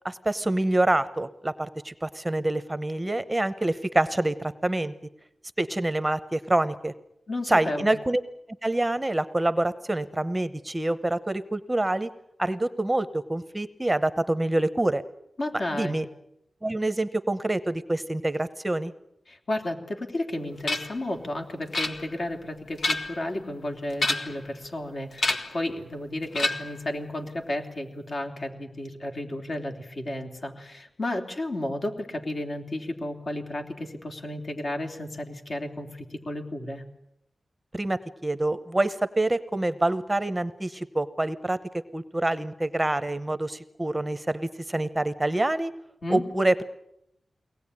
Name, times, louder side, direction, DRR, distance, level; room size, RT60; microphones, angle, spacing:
voice 1, 0.0-4.9 5.6-6.9 7.5-8.2 8.6-12.1 12.4-15.0 15.7-16.0 16.6-18.9 37.7-45.7 46.1-46.6, right 1 dB, 15° right, 13 dB, 0.9 m, -26 dB
voice 2, 7.3-7.9 15.4-16.0 19.3-36.8 46.0-46.2, left 1 dB, 50° left, 3 dB, 3.3 m, -33 dB
sound 1, 20.7-21.0 21.7-22.3 22.7-23.3 23.9-24.5 25.2-25.6 26.3-26.8, left 2 dB, 70° left, 1.7 m, -28 dB
23.0 x 19.0 x 9.8 m, 0.81 s
wide cardioid pair, 90°, 0 cm